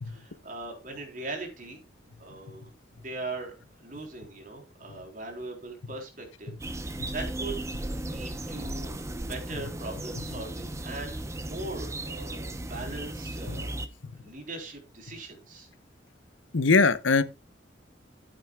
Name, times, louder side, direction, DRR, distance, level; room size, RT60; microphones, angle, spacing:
voice 1, 0.1-1.8 2.2-2.7 2.9-13.7 14.2-15.7, right 2 dB, 45° right, 3.6 m, -40 dB
sound 1, 6.6-13.9, right 1 dB, 15° right, 0.8 m, -36 dB
voice 2, 16.5-17.2, left 4 dB, 90° left, 0.9 m, -21 dB
14.0 x 8.9 x 2.3 m
head